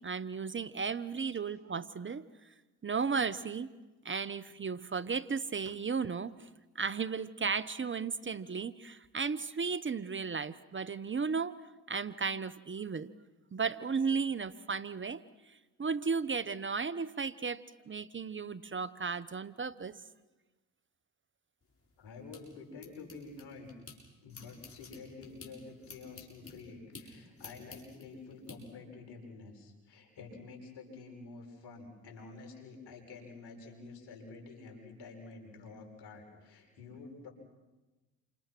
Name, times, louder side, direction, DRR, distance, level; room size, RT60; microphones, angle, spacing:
voice 1, 0.0-2.3 2.8-3.7 4.0-6.5 6.7-11.6 11.9-13.1 13.5-20.0, right 5 dB, 30° right, 16 dB, 1.1 m, -35 dB
sound 1, 21.6-24.0 24.3-28.6, left 4 dB, 35° left, 7.6 m, -52 dB
voice 2, 22.0-23.7 24.2-37.3, left 4 dB, 70° left, 3 dB, 6.8 m, -49 dB
29.5 x 26.5 x 6.2 m, 1.1 s
hypercardioid pair, 55°, 41 cm